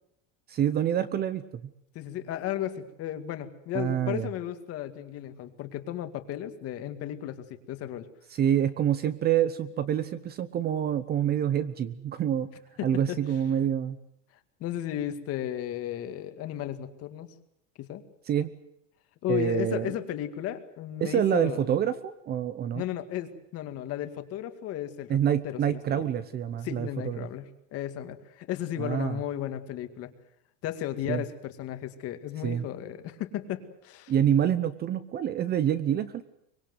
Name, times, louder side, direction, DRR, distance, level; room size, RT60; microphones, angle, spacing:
voice 1, 0.5-1.7 3.7-4.3 8.3-12.5 12.8-14.0 18.3-18.5 19.3-19.9 21.0-22.8 25.1-27.3 28.8-29.2 31.1-31.2 32.4-32.6 34.1-36.3, right 9 dB, 25° right, 14 dB, 0.9 m, -27 dB
voice 2, 1.9-8.1 12.8-13.2 14.6-17.3 17.8-18.0 19.2-21.6 22.7-25.2 25.4-26.1 26.6-30.1 30.6-34.1, left 11 dB, 40° left, 9 dB, 2.1 m, -34 dB
24.0 x 21.0 x 8.0 m, 0.76 s
supercardioid pair, 150°, 38 cm